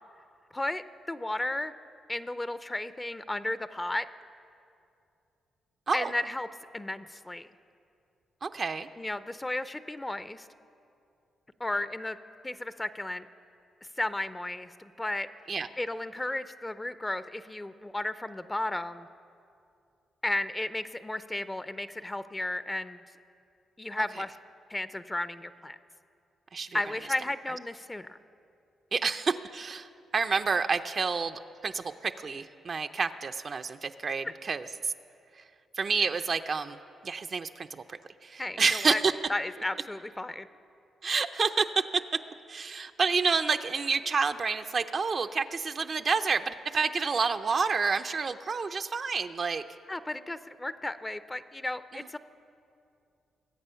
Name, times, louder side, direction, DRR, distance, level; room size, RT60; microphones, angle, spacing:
voice 1, 0.5-1.7 2.1-4.1 5.9-6.5 6.7-7.5 9.0-10.5 11.6-12.2 12.4-13.3 14.0-15.3 15.8-19.1 20.2-23.0 23.8-24.4 24.7-25.8 26.7-28.2 38.4-39.0 39.3-40.5 49.9-52.2, left 2 dB, 20° left, 13 dB, 0.5 m, -34 dB
voice 2, 8.4-8.9 15.5-15.7 26.5-26.7 28.9-34.9 35.8-36.8 37.0-39.1 41.0-42.0 42.5-49.6 51.9-52.0, right 5 dB, 50° right, 7 dB, 0.5 m, -29 dB
21.0 x 8.1 x 5.6 m, 2.5 s
supercardioid pair, 65°, 0 cm